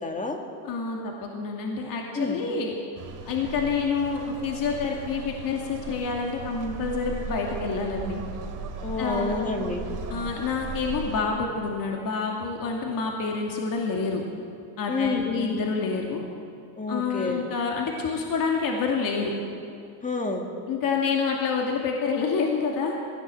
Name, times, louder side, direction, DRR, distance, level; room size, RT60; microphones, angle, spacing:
voice 1, 0.0-0.4 2.2-2.4 8.8-9.9 14.9-15.6 16.8-17.4 20.0-20.4, left 3 dB, 15° left, 3 dB, 2.2 m, -28 dB
voice 2, 0.6-2.7 3.2-8.2 9.0-9.3 10.1-14.2 14.8-16.2 16.9-19.3 20.7-23.0, left 5 dB, 40° left, 0 dB, 2.5 m, -28 dB
sound 1, 2.9-11.2, right 5 dB, 40° right, 2.6 m, -37 dB
20.5 x 16.0 x 7.8 m, 2.5 s
cardioid pair, 145°, 49 cm